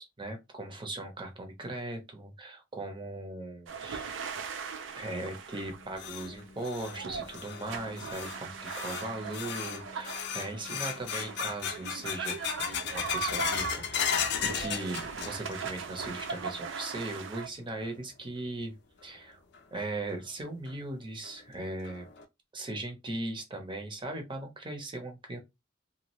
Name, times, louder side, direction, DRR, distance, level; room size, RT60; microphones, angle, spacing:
voice 1, 0.0-4.2 5.0-18.7 19.0-19.4 19.7-22.1 22.5-25.4, right 2 dB, 25° right, 0.8 m, -39 dB
sound 1, 3.7-17.5, right 6 dB, 75° right, 0.5 m, -40 dB
sound 2, 5.6-15.7 16.0-16.6 17.0-17.1 17.8-17.9 19.5-19.6 20.1-20.2 20.7-20.8 21.2-21.3 21.8-22.2, left 7 dB, 60° left, 0.5 m, -36 dB
2.6 x 2.4 x 3.0 m
head